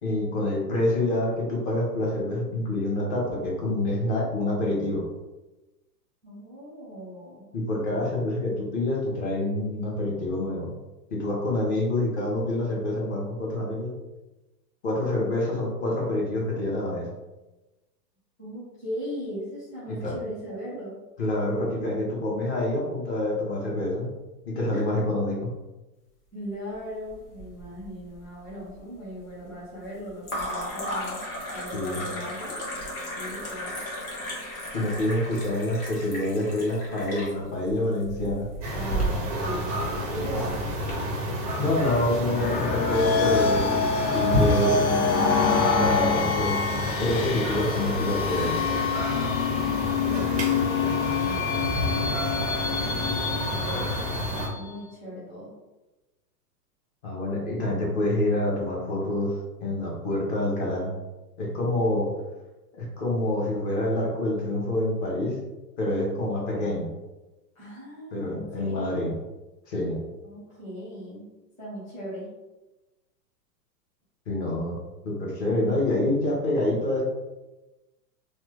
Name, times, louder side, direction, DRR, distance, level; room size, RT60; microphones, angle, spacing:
voice 1, 0.0-5.0 7.5-10.7 11.1-13.9 14.8-17.1 19.9-20.1 21.2-24.1 24.4-25.4 31.7-32.0 34.7-38.5 41.6-43.7 44.1-44.9 45.8-46.5 47.0-48.6 57.0-59.3 59.6-60.9 61.4-62.1 62.7-65.4 65.8-66.9 68.1-69.1 69.7-70.0 74.3-74.8 75.0-77.0, left 1 dB, 40° left, -3 dB, 1.0 m, -27 dB
voice 2, 6.2-7.5 18.4-21.0 24.7-24.8 26.3-31.2 31.5-32.6 33.1-33.8 38.7-39.8 40.1-40.8 50.0-55.5 67.5-69.1 70.2-71.3 71.6-72.3, equal, 15° left, -8 dB, 0.8 m, -39 dB
sound 1, 27.1-27.9 28.1-28.8 30.2-40.9, equal, 60° left, 1.3 m, -35 dB
sound 2, 38.6-54.5, equal, 25° right, 0.3 m, -30 dB
sound 3, 42.2-54.8, left 5 dB, 90° left, 0.7 m, -26 dB
3.1 x 2.1 x 3.2 m, 1.1 s
hypercardioid pair, 150°, 50 cm